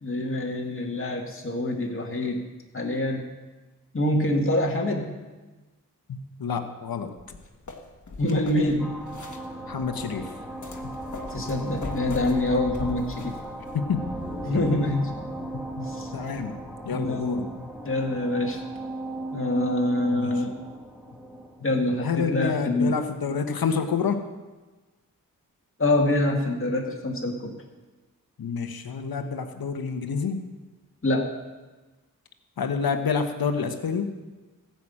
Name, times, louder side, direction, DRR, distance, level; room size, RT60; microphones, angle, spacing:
voice 1, 0.0-2.4 2.7-3.2 3.9-5.2 8.2-8.9 11.3-13.3 14.4-15.1 15.9-16.1 16.9-17.5 17.8-18.6 19.3-20.5 21.6-22.9 25.8-27.5 31.0-31.3, left 1 dB, 35° left, 0 dB, 2.1 m, -25 dB
voice 2, 6.1-7.1 9.7-10.3 10.8-10.9 13.7-14.0 14.5-14.7 15.5-16.6 16.8-17.7 20.1-20.4 22.0-24.2 28.4-30.4 32.6-34.1, left 6 dB, 80° left, 8 dB, 1.1 m, -28 dB
sound 1, 7.2-13.8, left 3 dB, 55° left, 1.6 m, -40 dB
sound 2, 8.8-22.9, right 1 dB, 5° right, 2.0 m, -37 dB
14.5 x 6.0 x 8.6 m, 1.2 s
cardioid pair, 40°, 36 cm